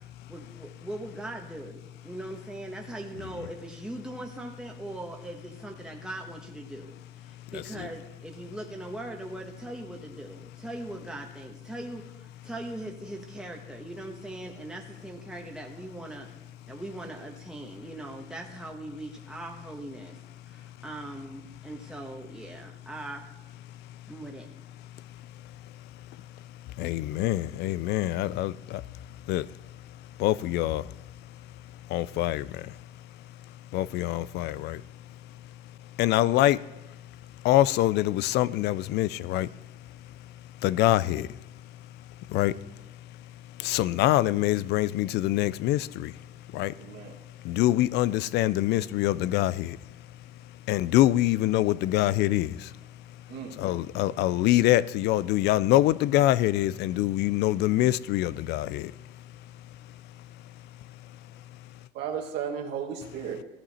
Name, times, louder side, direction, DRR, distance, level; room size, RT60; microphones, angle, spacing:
voice 1, 0.3-7.0 7.2-16.3 16.7-20.2 20.5-23.3 24.1-24.5, right 1 dB, 5° right, 1.3 m, -40 dB
voice 2, 7.5-7.9 26.8-28.5 29.3-29.5 30.2-30.8 31.9-32.4 33.7-34.8 36.0-36.6 37.4-39.5 40.6-41.3 42.3-42.5 43.6-46.1 46.5-46.7 47.5-49.8 50.7-52.5 53.6-58.9, left 15 dB, 80° left, 0.4 m, -24 dB
voice 3, 46.8-47.2 53.3-53.5 61.9-63.4, right 7 dB, 85° right, 1.7 m, -34 dB
15.0 x 9.9 x 4.3 m
cardioid pair, 110°, 17 cm